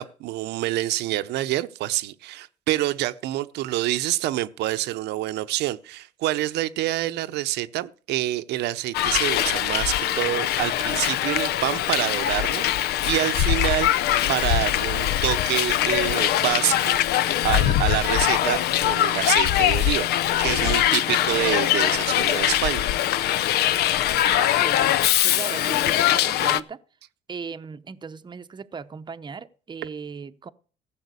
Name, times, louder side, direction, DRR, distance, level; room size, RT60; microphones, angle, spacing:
voice 1, 0.0-17.2 17.4-20.1 20.4-22.9, right 15 dB, 80° right, 0.8 m, -27 dB
Hiss, 8.9-26.6, left 12 dB, 75° left, 0.6 m, -22 dB
voice 2, 24.2-26.8 27.3-30.5, right 5 dB, 25° right, 0.8 m, -37 dB
15.0 x 5.7 x 8.3 m
cardioid pair, 110°, 17 cm